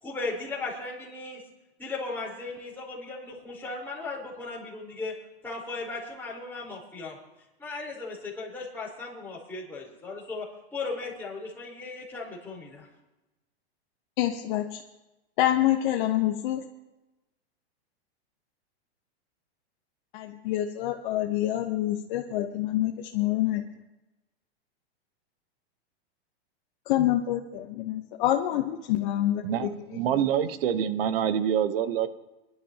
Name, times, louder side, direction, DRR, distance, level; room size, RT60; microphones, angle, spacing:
voice 1, 0.0-1.4 1.8-5.1 5.4-7.2 7.6-10.5 10.7-12.9, left 3 dB, 5° left, 4.4 m, -36 dB
voice 2, 14.2-14.8 15.4-16.6 20.1-23.6 26.9-30.0, left 13 dB, 50° left, 1.0 m, -27 dB
voice 3, 29.4-32.1, right 9 dB, 60° right, 1.0 m, -26 dB
24.5 x 11.0 x 2.9 m
supercardioid pair, 145°, 32 cm